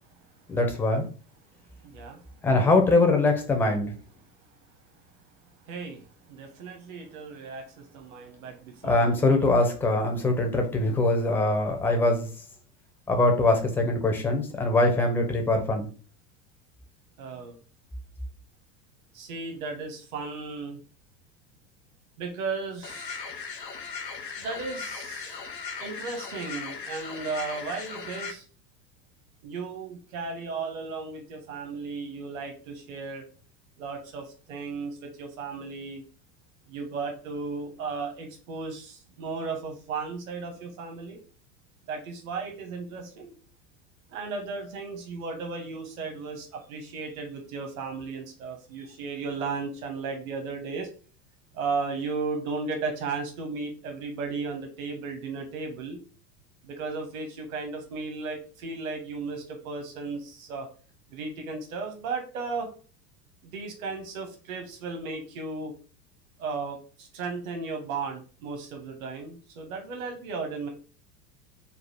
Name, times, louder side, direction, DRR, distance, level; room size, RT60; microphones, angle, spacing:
voice 1, 0.5-1.1 2.4-3.9 8.8-12.3 13.1-15.9, left 2 dB, 5° left, 3 dB, 0.4 m, -23 dB
voice 2, 1.8-2.2 5.6-9.1 9.4-9.7 17.2-17.6 19.1-20.8 22.2-23.2 24.3-25.4 25.8-28.4 29.4-33.2 33.8-36.0 36.7-41.2 41.9-43.3 44.1-50.9 51.5-56.0 56.6-60.7 61.1-62.7 63.4-65.7 66.4-70.7, right 4 dB, 60° right, 4 dB, 1.1 m, -35 dB
sound 1, 22.8-28.3, left 5 dB, 85° left, 0.8 m, -38 dB
3.9 x 2.4 x 4.5 m, 0.38 s
figure-of-eight pair, 80°, 48 cm